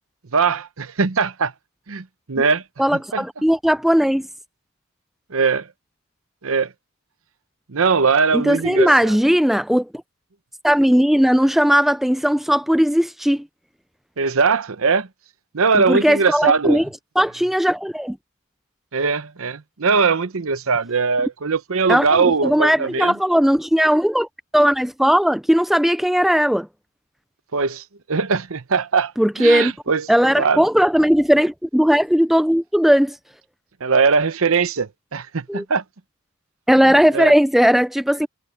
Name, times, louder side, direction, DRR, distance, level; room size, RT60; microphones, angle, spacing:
voice 1, 0.3-1.5 1.9-2.6 3.1-3.2 5.3-5.7 6.4-6.7 7.7-9.2 14.2-15.1 15.5-16.8 18.9-23.1 27.5-29.1 29.4-30.1 30.4-30.6 33.8-35.8 37.1-37.3, right 5 dB, 65° right, 0.8 m, -20 dB
voice 2, 2.8-4.3 8.3-9.9 10.6-13.4 15.7-16.9 17.2-18.2 21.9-24.3 24.5-26.7 29.2-29.7 30.1-33.1 35.5-35.6 36.7-38.3, equal, ahead, 0.3 m, -17 dB
head